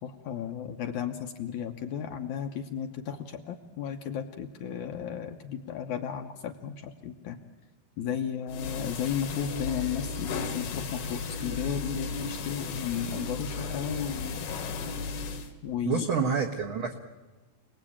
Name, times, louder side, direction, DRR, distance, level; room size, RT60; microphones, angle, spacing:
voice 1, 0.0-7.4 8.0-14.8 15.6-16.1, left 8 dB, 65° left, 5 dB, 2.1 m, -34 dB
sound 1, 8.5-15.5, left 4 dB, 80° left, 3.8 m, -35 dB
sound 2, 9.5-14.5, equal, 15° right, 4.2 m, -47 dB
voice 2, 15.8-16.9, right 5 dB, 75° right, 2 dB, 1.2 m, -28 dB
28.0 x 19.5 x 8.8 m, 1.2 s
omnidirectional pair, 4.5 m